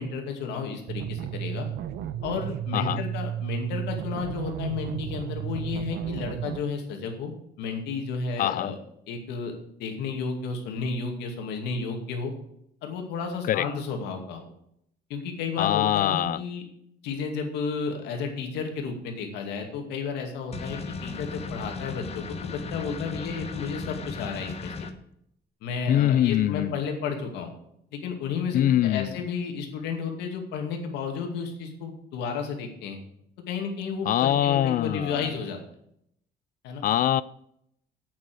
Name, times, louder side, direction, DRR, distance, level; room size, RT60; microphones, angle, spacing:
voice 1, 0.0-1.7 2.2-7.3 7.6-8.8 9.1-9.5 9.8-12.3 12.8-14.5 15.1-16.6 17.0-24.7 25.6-27.5 27.9-33.0 33.5-35.6 36.6-36.8, left 5 dB, 85° left, 3 dB, 2.4 m, -32 dB
sound 1, 0.9-6.6, right 10 dB, 75° right, 0.9 m, -33 dB
voice 2, 2.7-3.0 8.4-8.7 13.5-13.7 15.6-16.4 25.9-26.8 28.5-29.2 34.0-35.2 36.8-37.2, left 12 dB, 55° left, 18 dB, 0.4 m, -23 dB
sound 2, 20.5-24.9, left 4 dB, 35° left, 1.3 m, -36 dB
8.5 x 7.6 x 7.8 m, 0.73 s
cardioid pair, 110°, 17 cm